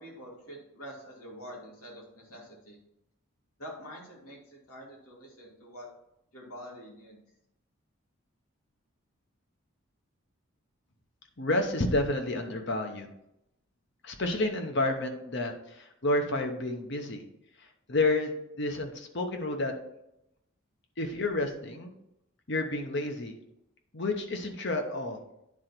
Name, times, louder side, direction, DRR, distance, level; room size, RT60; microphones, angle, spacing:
voice 1, 0.0-2.8 3.6-5.9 6.3-7.2, equal, 90° left, -3 dB, 2.7 m, -46 dB
voice 2, 11.4-13.1 14.0-17.2 17.6-18.3 18.6-19.7 21.0-21.9 22.5-23.4 23.9-25.2, left 2 dB, 55° left, 5 dB, 1.0 m, -30 dB
9.6 x 3.9 x 4.5 m, 0.83 s
head